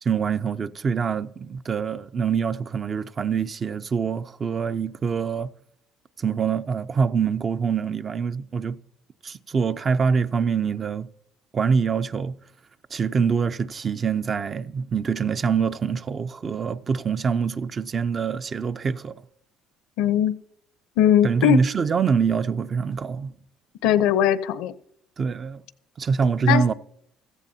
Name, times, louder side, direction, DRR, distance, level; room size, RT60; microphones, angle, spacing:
voice 1, 0.0-5.5 6.2-8.8 9.2-11.1 11.5-12.4 12.9-19.2 21.2-23.3 25.2-25.6 26.0-26.7, right 6 dB, 35° right, 0.5 m, -25 dB
voice 2, 20.0-20.4 21.0-21.6 23.8-24.7 26.5-26.7, left 11 dB, 80° left, 0.7 m, -20 dB
16.5 x 14.5 x 2.8 m
cardioid pair, 100°, 0 cm